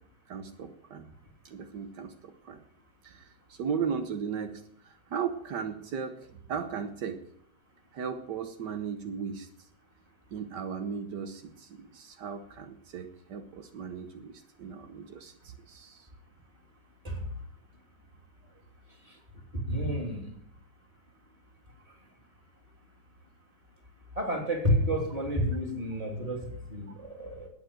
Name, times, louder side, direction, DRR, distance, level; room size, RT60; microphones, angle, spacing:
voice 1, 0.3-1.1 1.5-2.6 3.0-7.2 7.9-9.5 10.3-16.1, right 6 dB, 75° right, 7 dB, 1.6 m, -37 dB
voice 2, 19.5-20.3 24.2-27.5, equal, 20° right, 2 dB, 3.2 m, -30 dB
12.5 x 9.0 x 9.1 m, 0.68 s
omnidirectional pair, 1.8 m